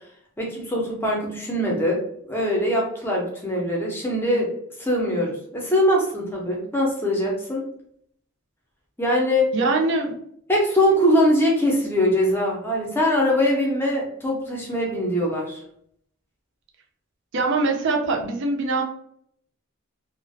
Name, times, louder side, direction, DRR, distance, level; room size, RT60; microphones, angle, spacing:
voice 1, 0.4-2.0 2.3-4.5 4.8-7.6 9.0-9.5 10.5-15.6, equal, 10° left, -2 dB, 0.6 m, -22 dB
voice 2, 9.5-10.1 17.3-18.8, right 3 dB, 55° right, 2 dB, 0.5 m, -22 dB
2.4 x 2.1 x 2.5 m, 0.68 s
head